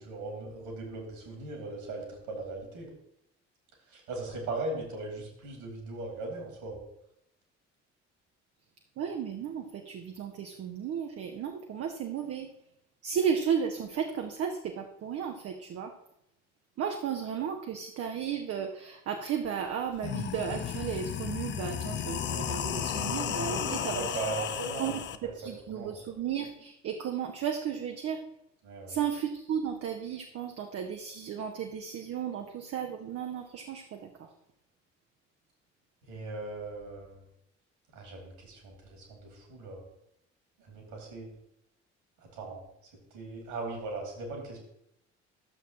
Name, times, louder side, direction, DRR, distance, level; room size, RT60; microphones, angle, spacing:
voice 1, 0.0-2.9 3.9-6.8 23.4-25.0 25.4-25.9 28.6-29.0 36.1-37.2 37.9-39.8 40.6-41.3 42.3-42.6 43.1-44.6, right 3 dB, 65° right, 1 dB, 2.6 m, -39 dB
voice 2, 9.0-12.5 13.0-15.9 16.8-24.1 24.3-24.4 24.8-28.2 28.9-34.3, right 8 dB, 40° right, 3 dB, 0.8 m, -34 dB
sound 1, 19.4-19.5 19.9-25.2, left 9 dB, 30° left, 0.5 m, -34 dB
12.5 x 7.1 x 3.0 m, 0.78 s
figure-of-eight pair, 50°, 37 cm